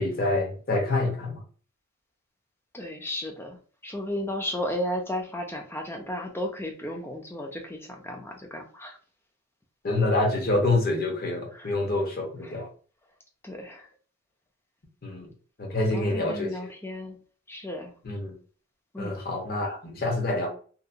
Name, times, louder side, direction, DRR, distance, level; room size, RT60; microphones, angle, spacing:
voice 1, 0.0-1.4 9.8-12.7 15.0-15.3 15.6-16.7 18.0-18.3 19.0-20.5, left 2 dB, 45° left, 1 dB, 0.7 m, -27 dB
voice 2, 2.7-9.0 11.6-11.7 12.4-12.6 13.4-13.9 15.8-17.2 17.5-18.0 18.9-19.2, left 1 dB, 10° left, 3 dB, 0.4 m, -34 dB
2.8 x 2.0 x 2.4 m, 0.42 s
head